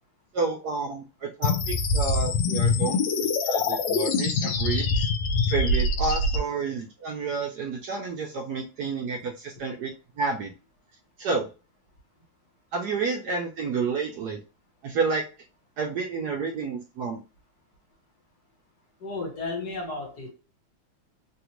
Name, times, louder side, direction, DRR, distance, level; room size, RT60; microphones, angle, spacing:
voice 1, 0.3-3.0 3.4-5.1 5.5-9.9 10.2-10.5 11.2-11.5 12.7-14.4 14.8-15.2 15.8-17.2, right 4 dB, 70° right, 1.0 m, -30 dB
sound 1, 1.4-6.4, left 3 dB, 80° left, 1.3 m, -24 dB
voice 2, 19.0-20.3, left 3 dB, 55° left, 1.6 m, -33 dB
3.4 x 2.4 x 2.9 m
omnidirectional pair, 2.1 m